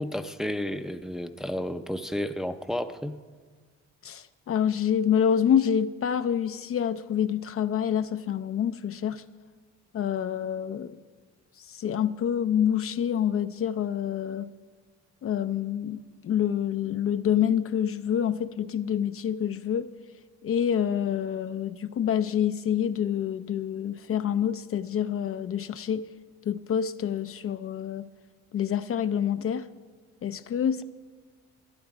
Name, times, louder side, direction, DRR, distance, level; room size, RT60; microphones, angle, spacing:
voice 1, 0.0-3.2, left 1 dB, ahead, 8 dB, 0.5 m, -32 dB
voice 2, 4.0-9.2 9.9-11.0 11.6-14.5 15.2-19.9 20.4-26.1 26.4-28.1 28.5-29.7 30.2-30.8, left 9 dB, 50° left, 11 dB, 0.5 m, -27 dB
13.0 x 11.5 x 5.0 m, 1.4 s
cardioid pair, 90°, 30 cm